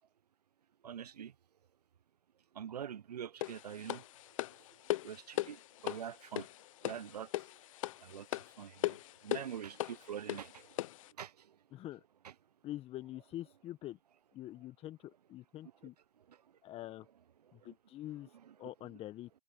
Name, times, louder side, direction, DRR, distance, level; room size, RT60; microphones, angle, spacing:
voice 1, 0.8-1.3 2.5-4.6 5.0-6.5 6.8-7.5 8.0-9.0 9.2-10.9 11.2-11.6 12.2-12.3 14.6-14.7 15.6-15.9 16.2-16.8 17.4-17.7 18.0-19.0, right 9 dB, 75° right, 1.0 m, -46 dB
sound 1, 3.4-11.1, left 16 dB, 55° left, 1.0 m, -39 dB
voice 2, 12.6-14.0 14.3-15.9 16.6-17.0 17.6-18.3 18.6-19.3, left 14 dB, 30° left, 1.4 m, -45 dB
hypercardioid pair, 110°, 20 cm